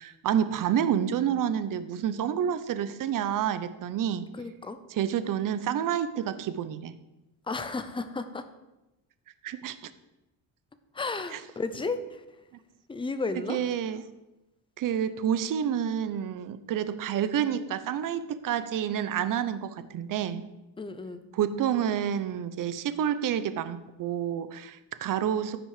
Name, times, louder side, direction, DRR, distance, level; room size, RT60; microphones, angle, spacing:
voice 1, 0.0-4.3 4.9-7.0 9.4-9.8 11.3-11.4 13.5-14.0 14.8-20.5 21.3-25.6, right 9 dB, 50° right, 13 dB, 0.7 m, -29 dB
voice 2, 4.3-4.8 7.5-8.4 10.9-12.2 12.9-13.6 20.8-21.2, left 3 dB, 10° left, 10 dB, 0.6 m, -33 dB
14.5 x 6.1 x 4.9 m, 0.98 s
cardioid pair, 150°, 43 cm